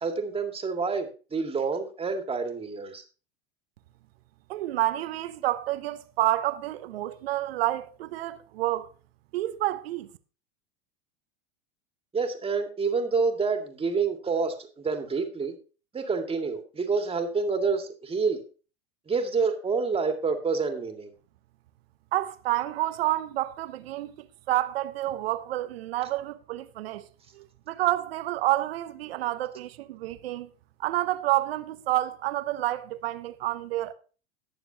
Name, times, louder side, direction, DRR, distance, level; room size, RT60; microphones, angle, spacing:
voice 1, 0.0-3.0 12.1-15.5 15.9-18.4 19.1-21.1, right 4 dB, 20° right, 2.1 m, -28 dB
voice 2, 4.5-8.9 9.3-10.1 22.1-27.1 27.3-30.5 30.8-33.9, right 15 dB, 70° right, 0.9 m, -29 dB
20.0 x 6.9 x 2.8 m
hypercardioid pair, 100°, 31 cm